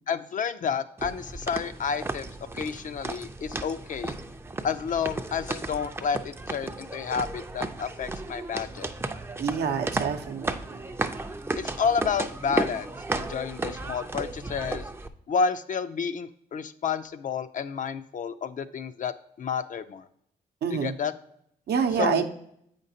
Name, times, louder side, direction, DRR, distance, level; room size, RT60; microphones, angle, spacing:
voice 1, 0.1-4.2 4.6-8.9 11.6-14.9 15.3-20.1 20.7-21.1 22.0-22.2, left 6 dB, 50° left, 12 dB, 0.4 m, -30 dB
sound 1, 1.0-15.1, right 2 dB, 15° right, 0.4 m, -34 dB
voice 2, 9.4-10.5 20.6-21.0 21.7-22.3, right 6 dB, 75° right, 6 dB, 0.7 m, -26 dB
8.0 x 5.2 x 2.8 m, 0.72 s
cardioid pair, 80°, 17 cm